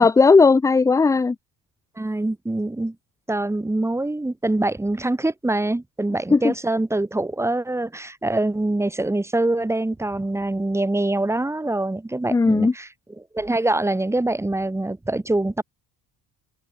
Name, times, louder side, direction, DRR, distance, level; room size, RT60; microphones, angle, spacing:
voice 1, 0.0-1.4 6.3-6.5 12.3-12.7, left 4 dB, 10° left, 0.3 m, -16 dB
voice 2, 2.0-3.0 3.3-12.9 13.2-15.6, right 2 dB, 5° right, 2.0 m, -24 dB
cardioid pair, 165°, 38 cm